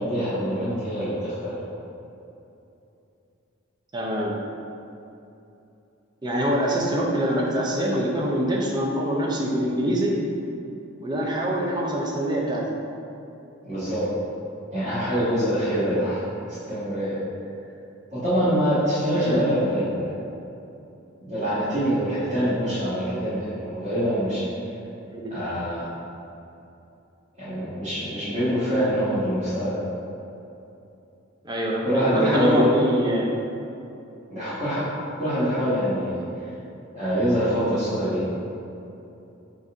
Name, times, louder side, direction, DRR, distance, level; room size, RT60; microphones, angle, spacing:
voice 1, 0.0-1.6 13.6-14.1 14.7-16.2 16.5-17.2 18.1-20.1 21.2-24.4 25.3-25.9 27.4-29.8 31.8-32.6 34.3-34.8 35.2-36.2 36.9-38.2, equal, 35° right, -16 dB, 1.5 m, -24 dB
voice 2, 3.9-4.3 6.2-10.2 11.0-12.6 19.1-19.4 25.0-25.3 31.4-33.3, equal, 20° right, -2 dB, 0.5 m, -25 dB
4.0 x 2.5 x 4.5 m, 2.8 s
head